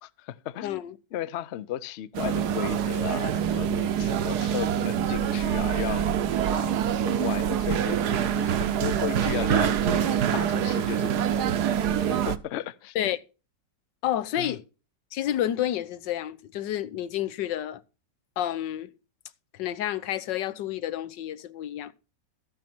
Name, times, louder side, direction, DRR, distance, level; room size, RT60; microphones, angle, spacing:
voice 1, 0.0-0.8 1.1-6.1 6.4-13.1 14.4-14.6, left 12 dB, 65° left, 0.7 m, -35 dB
voice 2, 0.6-0.9 12.9-13.2 14.0-14.6 15.1-17.8 18.4-18.9 19.6-21.9, left 12 dB, 90° left, 1.5 m, -29 dB
sound 1, 2.1-12.4, right 9 dB, 70° right, 1.3 m, -25 dB
13.5 x 8.4 x 4.4 m
omnidirectional pair, 1.9 m